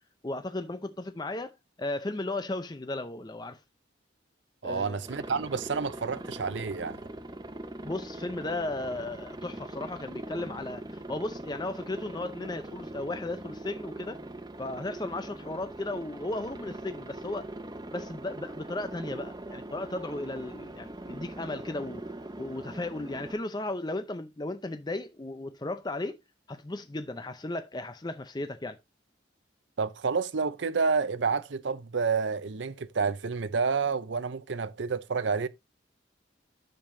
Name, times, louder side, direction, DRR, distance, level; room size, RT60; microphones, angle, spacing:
voice 1, 0.2-1.5 1.8-3.6 4.6-5.1 7.8-14.2 14.6-17.5 17.9-22.0 22.4-26.2 26.5-28.8, left 2 dB, 20° left, 0.6 m, -35 dB
voice 2, 4.6-7.0 29.8-35.5, right 5 dB, 70° right, 0.6 m, -29 dB
Aircraft, 5.0-23.3, right 1 dB, 20° right, 0.8 m, -41 dB
10.5 x 6.7 x 2.6 m
head